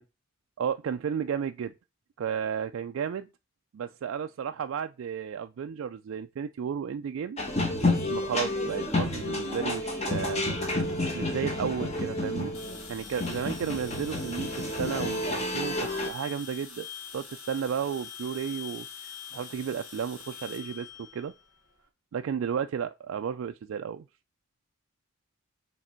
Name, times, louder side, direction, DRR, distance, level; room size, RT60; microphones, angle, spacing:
voice 1, 0.6-1.7 2.2-3.3 3.7-7.4 8.1-10.4 10.8-10.9 11.1-12.5 12.9-21.3 22.1-24.1, right 7 dB, 70° right, 0.3 m, -33 dB
sound 1, 7.4-16.1, left 2 dB, 30° left, 1.1 m, -30 dB
sound 2, 12.5-21.8, left 7 dB, 75° left, 1.2 m, -44 dB
6.5 x 3.4 x 4.3 m
head